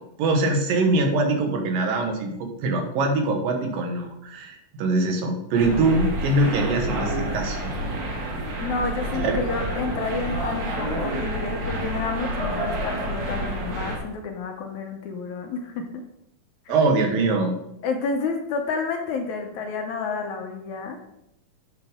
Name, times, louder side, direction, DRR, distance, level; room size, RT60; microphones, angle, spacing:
voice 1, 0.2-7.7 9.2-9.4 16.7-17.5, right 2 dB, 85° right, 3 dB, 3.1 m, -23 dB
sound 1, 5.5-14.0, right 1 dB, 60° right, 3.1 m, -29 dB
voice 2, 8.6-16.0 17.8-21.0, left 4 dB, 70° left, 4 dB, 2.1 m, -30 dB
10.0 x 7.1 x 3.7 m, 0.79 s
omnidirectional pair, 3.9 m